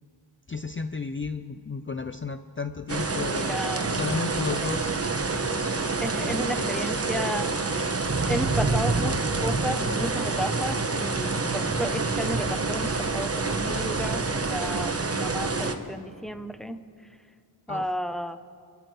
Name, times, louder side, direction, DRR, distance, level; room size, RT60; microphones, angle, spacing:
voice 1, 0.5-3.6 3.9-4.9 6.2-6.6 17.7-17.9, left 4 dB, 25° left, 9 dB, 0.5 m, -33 dB
sound 1, 2.9-15.7, right 3 dB, 30° right, 1.2 m, -27 dB
voice 2, 3.1-4.0 4.6-4.7 6.0-7.5 8.3-16.8 17.7-18.4, equal, ahead, 10 dB, 0.8 m, -33 dB
28.0 x 13.5 x 3.3 m, 2.3 s
cardioid pair, 60°, 45 cm